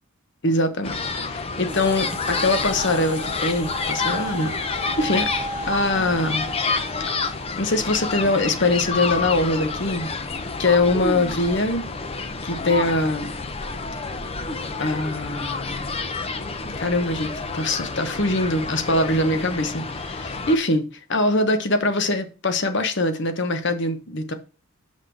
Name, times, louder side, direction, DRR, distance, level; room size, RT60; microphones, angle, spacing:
voice 1, 0.4-1.0 1.3-4.5 5.0-5.3 5.7-6.5 7.6-10.1 10.6-11.9 12.4-13.4 14.8-15.9 16.8-20.8 21.1-24.3, left 2 dB, 50° left, 1.0 m, -23 dB
sound 1, 0.8-20.6, left 4 dB, 25° left, 0.6 m, -29 dB
sound 2, 1.7-10.0, equal, 85° left, 3.0 m, -36 dB
6.1 x 5.8 x 4.7 m
head